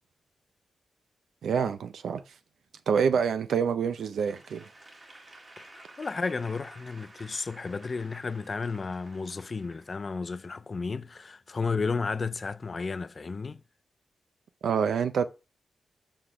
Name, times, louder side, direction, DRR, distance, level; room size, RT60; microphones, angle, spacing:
voice 1, 1.4-2.2 2.9-4.7 14.6-15.3, right 6 dB, 85° right, 0.5 m, -26 dB
Applause / Crowd, 4.1-10.5, right 2 dB, 30° right, 1.7 m, -52 dB
voice 2, 5.6-13.6, left 4 dB, 35° left, 0.3 m, -33 dB
6.5 x 3.9 x 5.7 m
wide cardioid pair, 145°, 0 cm